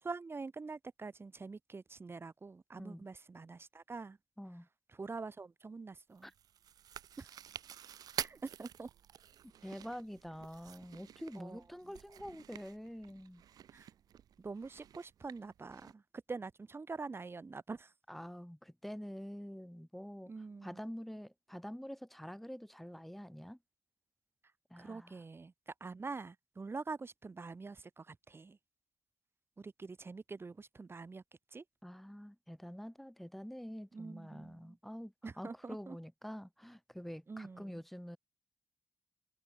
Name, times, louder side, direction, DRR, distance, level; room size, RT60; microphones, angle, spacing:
voice 1, 0.0-4.2 4.9-6.3 7.2-7.3 8.2-8.9 11.3-11.6 13.7-13.9 14.4-16.0 16.3-17.9 20.3-20.8 24.8-28.6 29.6-31.2 31.5-31.6 33.9-34.8 35.2-36.0 37.3-37.8, right 4 dB, 40° right, 4.8 m, -45 dB
voice 2, 2.7-3.1 4.4-4.7 6.2-6.3 9.6-13.4 18.1-20.3 20.6-23.6 24.7-25.2 31.8-38.2, equal, ahead, 1.5 m, -47 dB
Chewing mastication, 6.2-15.9, right 10 dB, 75° right, 1.6 m, -49 dB
cardioid pair, 60°, 6 cm